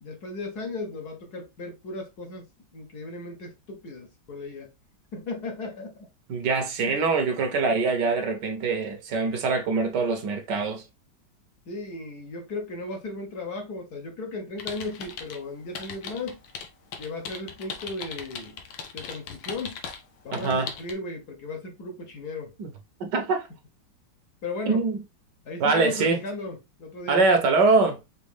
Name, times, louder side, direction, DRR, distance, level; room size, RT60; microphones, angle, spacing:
voice 1, 0.0-2.5 2.7-4.7 5.1-6.0 6.8-7.0 11.7-16.4 17.0-18.6 18.9-19.8 20.2-22.5 24.4-24.8 25.4-27.2, left 3 dB, 60° left, 1.5 m, -36 dB
voice 2, 6.3-10.8 20.3-20.7 22.6-22.7 23.0-23.5 24.7-25.0 25.6-26.2 27.1-28.0, right 4 dB, 65° right, 1.4 m, -23 dB
sound 1, 14.6-15.4 15.7-20.0 20.3-20.9, left 6 dB, 85° left, 1.6 m, -38 dB
5.2 x 2.8 x 3.2 m
omnidirectional pair, 2.1 m